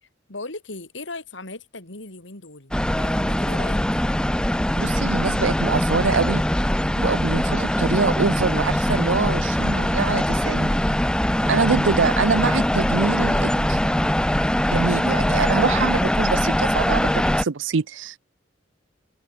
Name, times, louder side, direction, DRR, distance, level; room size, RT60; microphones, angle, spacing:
voice 1, 0.3-3.8 11.3-11.7, left 2 dB, 80° left, 3.8 m, -38 dB
sound 1, 2.7-17.4, left 1 dB, 5° left, 0.5 m, -22 dB
voice 2, 4.8-6.4 7.0-10.8 11.5-13.8 14.7-18.2, right 5 dB, 85° right, 0.6 m, -24 dB
head